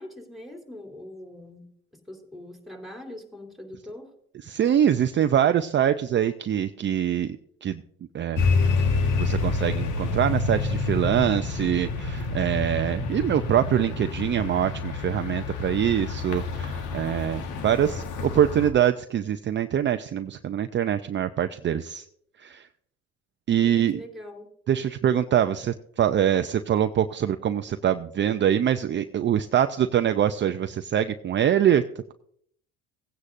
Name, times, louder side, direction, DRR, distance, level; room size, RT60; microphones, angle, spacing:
voice 1, 0.0-4.1 23.6-24.5, left 1 dB, ahead, 2 dB, 2.9 m, -42 dB
voice 2, 4.4-7.8 8.1-8.4 9.2-22.0 22.4-22.7 23.5-24.0 24.7-31.8, right 10 dB, 35° right, 9 dB, 0.5 m, -24 dB
sound 1, 8.4-18.7, left 4 dB, 75° left, 1.6 m, -28 dB
16.5 x 9.6 x 2.6 m, 0.66 s
supercardioid pair, 70°, 31 cm